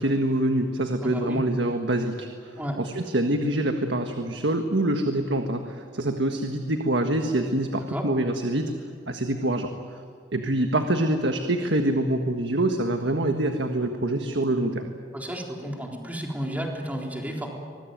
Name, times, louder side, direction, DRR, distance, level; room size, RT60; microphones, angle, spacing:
voice 1, 0.0-8.7 9.1-9.7 10.3-14.9, right 1 dB, 70° right, 5 dB, 1.6 m, -25 dB
voice 2, 1.0-1.4 2.6-2.8 7.9-8.1 15.1-17.5, equal, 10° right, 0 dB, 3.9 m, -32 dB
24.5 x 21.0 x 9.3 m, 2.4 s
head